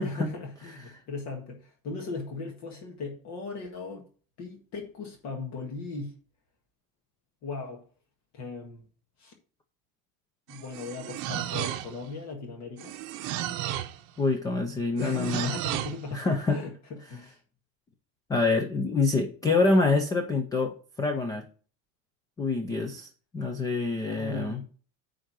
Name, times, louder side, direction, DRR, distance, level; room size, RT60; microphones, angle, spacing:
voice 1, 0.0-4.0 4.4-6.1 7.4-7.8 8.3-8.8 9.2-9.3 10.5-12.9 13.2-13.4 15.0-16.7 17.1-17.4 24.0-24.7, left 3 dB, 40° left, 1.8 m, -38 dB
sound 1, 10.5-12.1 12.8-14.0 15.0-16.0, right 12 dB, 50° right, 0.9 m, -33 dB
voice 2, 14.2-15.5 16.1-16.6 18.3-21.4 22.4-23.1 23.3-24.6, left 3 dB, 10° left, 0.3 m, -26 dB
9.9 x 3.8 x 6.1 m
cardioid pair, 180°, 39 cm